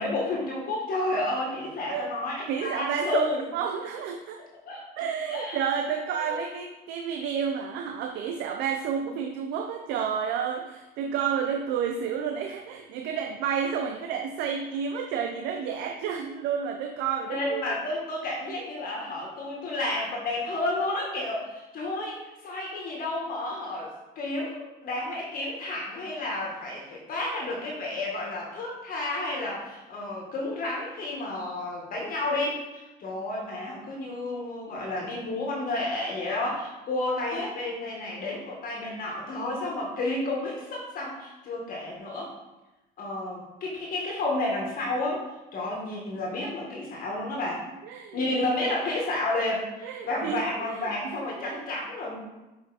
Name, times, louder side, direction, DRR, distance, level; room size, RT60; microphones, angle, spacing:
voice 1, 0.0-3.4 4.7-4.8 5.3-5.6 6.1-6.4 17.3-42.3 43.0-45.3 45.5-47.6 48.1-52.2, left 2 dB, 60° left, -2 dB, 1.9 m, -31 dB
voice 2, 2.5-4.4 5.0-17.8 47.8-48.5 49.8-51.7, right 7 dB, 85° right, 4 dB, 0.6 m, -31 dB
6.7 x 5.0 x 4.2 m, 1.0 s
cardioid pair, 110°, 17 cm